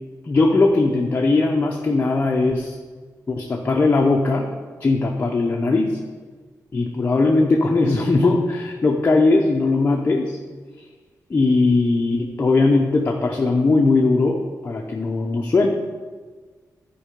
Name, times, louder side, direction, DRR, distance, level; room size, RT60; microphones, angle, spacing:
voice 1, 0.3-2.8 3.3-4.5 4.8-6.0 6.7-10.4 11.3-14.4 14.6-15.7, left 3 dB, 30° left, 0 dB, 0.7 m, -19 dB
12.0 x 4.6 x 5.2 m, 1.5 s
wide cardioid pair, 160°, 6 cm